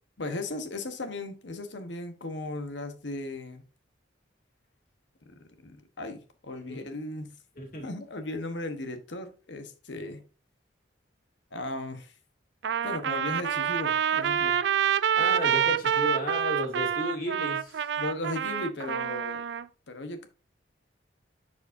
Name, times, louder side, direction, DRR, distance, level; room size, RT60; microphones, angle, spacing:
voice 1, 0.2-3.6 5.3-5.4 5.6-7.3 7.8-10.2 11.5-12.1 12.8-14.6 18.0-19.4 19.9-20.3, left 2 dB, 75° left, 1.1 m, -36 dB
voice 2, 7.6-7.9 15.2-17.8, left 1 dB, 45° left, 2.4 m, -33 dB
Trumpet, 12.6-19.7, right 8 dB, 65° right, 0.4 m, -27 dB
11.0 x 4.9 x 2.7 m
head